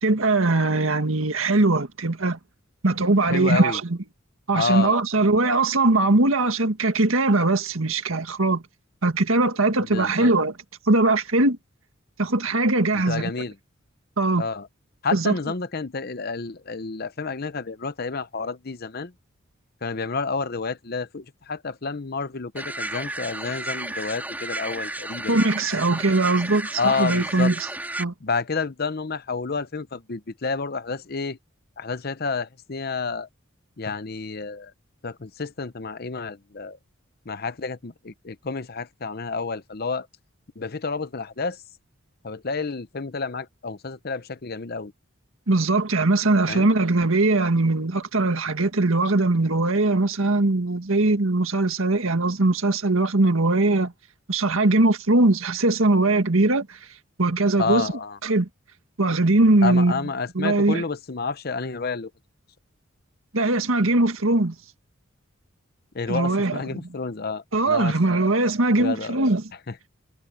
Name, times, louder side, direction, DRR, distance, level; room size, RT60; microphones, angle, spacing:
voice 1, 0.0-2.4 2.8-4.0 4.5-8.6 9.0-10.6 10.8-11.6 12.2-13.3 14.2-14.5 15.1-15.3 25.3-27.7 28.0-28.1 45.5-53.9 54.3-56.8 57.2-57.9 58.2-58.5 59.0-60.0 60.3-60.8 63.3-64.5 66.1-66.8 67.5-69.4, right 2 dB, 85° right, 1.8 m, -21 dB
voice 2, 3.2-3.8 4.5-4.9 9.9-10.3 13.1-13.5 14.4-14.7 15.0-19.1 19.8-25.8 26.8-27.5 28.2-31.4 31.8-33.3 33.8-34.7 35.0-36.8 37.3-40.1 40.6-41.6 42.2-44.9 46.5-46.7 57.6-58.2 59.6-62.1 65.9-68.2 68.8-69.2, left 4 dB, 50° left, 0.8 m, -30 dB
sound 1, 22.6-28.0, right 1 dB, 10° right, 3.7 m, -32 dB
head